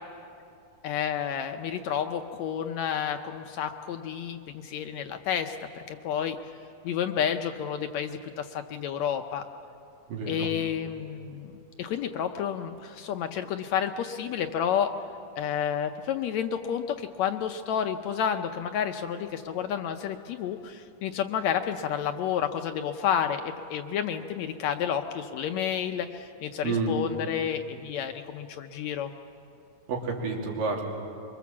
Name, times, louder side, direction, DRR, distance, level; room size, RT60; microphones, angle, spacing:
voice 1, 0.8-6.4 6.8-9.4 10.3-11.5 11.8-14.9 15.4-29.1, left 8 dB, 75° left, 7 dB, 1.7 m, -30 dB
voice 2, 10.1-10.5 26.6-26.9 29.9-30.8, right 4 dB, 90° right, -1 dB, 4.5 m, -29 dB
24.5 x 24.0 x 7.3 m, 2.6 s
omnidirectional pair, 3.8 m